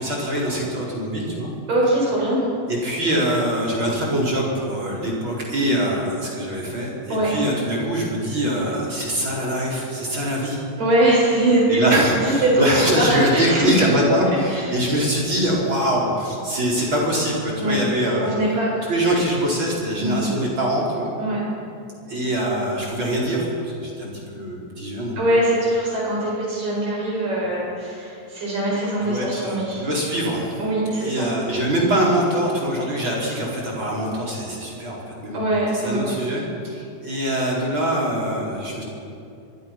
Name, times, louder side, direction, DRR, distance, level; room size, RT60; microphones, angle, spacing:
voice 1, 0.0-1.5 2.7-10.6 11.7-18.3 18.9-21.1 22.1-25.2 29.0-30.6 30.9-35.4 35.7-38.8, right 1 dB, 30° right, -3 dB, 5.1 m, -23 dB
voice 2, 1.7-2.4 7.1-7.3 10.8-11.8 12.1-13.7 14.5-14.8 17.6-17.8 18.2-18.8 20.0-20.3 21.2-21.5 25.2-29.9 30.6-31.1 35.3-36.2, right 1 dB, 60° right, -5 dB, 9.4 m, -22 dB
25.0 x 23.5 x 6.1 m, 2.6 s
omnidirectional pair, 4.2 m